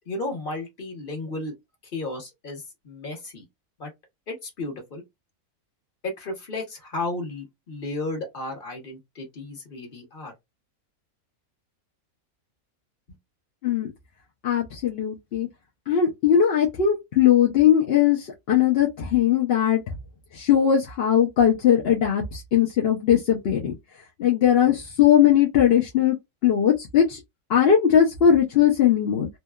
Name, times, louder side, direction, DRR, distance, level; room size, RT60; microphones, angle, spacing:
voice 1, 0.1-1.5 1.9-3.4 3.8-3.9 4.3-5.0 6.0-10.3, left 2 dB, 40° left, 1.2 m, -33 dB
voice 2, 14.4-15.5 15.9-19.8 20.3-23.7 24.2-26.1 26.4-27.2 27.5-29.3, left 9 dB, 55° left, 0.7 m, -19 dB
2.8 x 2.2 x 2.2 m
omnidirectional pair, 1.6 m